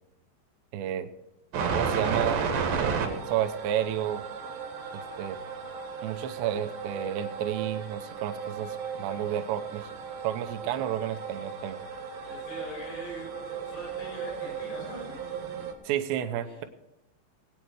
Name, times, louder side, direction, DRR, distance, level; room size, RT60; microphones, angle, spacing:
voice 1, 0.7-1.1 1.7-2.4 2.8-4.2 4.9-5.4 6.0-9.9 10.2-11.8 15.8-16.6, right 11 dB, 80° right, 7 dB, 2.9 m, -31 dB
sound 1, 1.5-15.7, right 5 dB, 60° right, 2.5 m, -34 dB
voice 2, 12.2-15.2 16.4-16.7, equal, 85° left, -4 dB, 8.8 m, -42 dB
20.0 x 9.1 x 4.7 m, 0.91 s
omnidirectional pair, 5.3 m